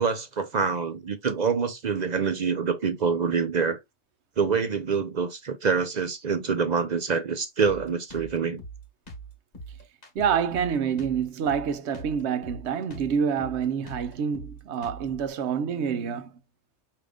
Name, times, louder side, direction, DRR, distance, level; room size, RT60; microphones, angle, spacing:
voice 1, 0.0-3.8 4.4-8.6, right 5 dB, 50° right, 0.5 m, -26 dB
Drum kit, 7.6-15.3, right 2 dB, 40° left, 1.3 m, -42 dB
voice 2, 10.1-16.4, right 7 dB, 70° right, 0.9 m, -27 dB
4.9 x 2.8 x 3.4 m
omnidirectional pair, 1.3 m